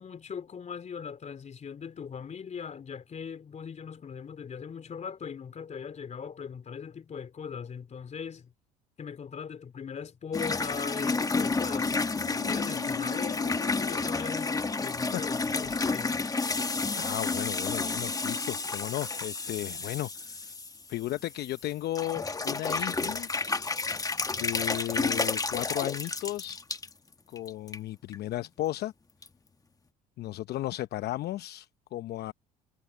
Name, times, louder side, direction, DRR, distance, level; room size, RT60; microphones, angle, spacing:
voice 1, 0.0-8.5 9.0-11.9 12.3-16.1, left 6 dB, 40° left, 3.0 m, -40 dB
sound 1, 10.3-21.6 22.0-26.9 27.4-27.8 28.1-28.2 29.2-29.3, left 3 dB, 20° left, 1.3 m, -31 dB
Squeak, 11.3-17.3, left 23 dB, 75° left, 1.1 m, -45 dB
voice 2, 16.9-20.5 20.9-23.3 24.3-26.8 27.3-28.9 30.2-32.3, left 15 dB, 60° left, 0.9 m, -35 dB
hypercardioid pair, 70°, 19 cm